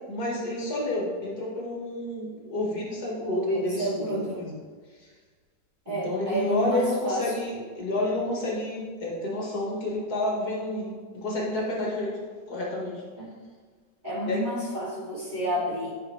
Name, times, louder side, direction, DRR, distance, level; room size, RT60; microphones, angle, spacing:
voice 1, 0.1-4.6 4.9-5.1 5.9-12.2 12.5-13.0 14.3-14.5, left 1 dB, 55° left, -3 dB, 1.8 m, -30 dB
voice 2, 3.2-4.4 5.9-7.2 13.2-13.3 14.0-15.9, right 1 dB, 25° right, -11 dB, 2.5 m, -29 dB
10.5 x 5.4 x 3.2 m, 1.5 s
omnidirectional pair, 2.1 m